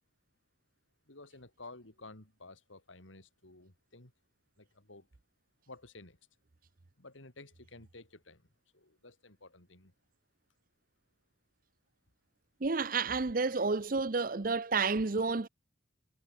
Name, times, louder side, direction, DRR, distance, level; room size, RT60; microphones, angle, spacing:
voice 1, 1.1-4.1 4.6-5.1 5.7-6.2 7.0-8.5 8.7-9.9, left 2 dB, 85° left, 3.6 m, -53 dB
voice 2, 12.6-15.5, right 4 dB, 45° right, 0.7 m, -30 dB
head